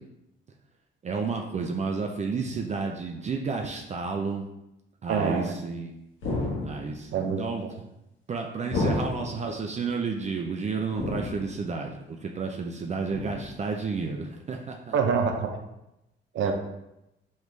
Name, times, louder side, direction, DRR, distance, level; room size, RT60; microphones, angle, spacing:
voice 1, 1.0-4.5 5.0-5.9 6.6-7.6 8.3-15.0 16.4-16.5, right 4 dB, 35° right, 2 dB, 0.4 m, -31 dB
voice 2, 5.1-5.5 7.1-7.4 14.9-15.5 16.3-16.5, right 6 dB, 75° right, 4 dB, 0.7 m, -25 dB
sound 1, 6.2-7.0 8.7-9.5 10.9-11.7 13.1-13.7 15.3-15.4, left 2 dB, 75° left, 1.2 m, -31 dB
3.7 x 3.1 x 3.2 m, 0.88 s
cardioid pair, 90°, 20 cm